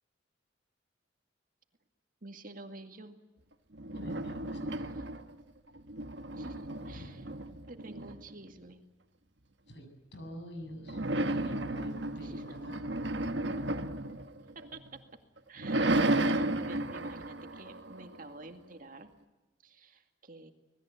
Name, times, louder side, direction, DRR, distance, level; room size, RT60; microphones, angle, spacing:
voice 1, 2.2-3.2 6.3-7.2 7.7-8.8 12.2-12.6 14.6-15.0 15.5-19.1 19.6-20.5, right 2 dB, 45° right, 6 dB, 2.2 m, -49 dB
sound 1, 3.7-5.4 5.8-8.5 10.8-15.0 15.4-18.5, right 2 dB, 65° right, 1.4 m, -33 dB
voice 2, 3.9-4.9 6.9-7.2 9.7-11.0 11.3-13.1, equal, 60° left, 5 dB, 7.5 m, -48 dB
26.5 x 20.0 x 8.4 m, 1.1 s
head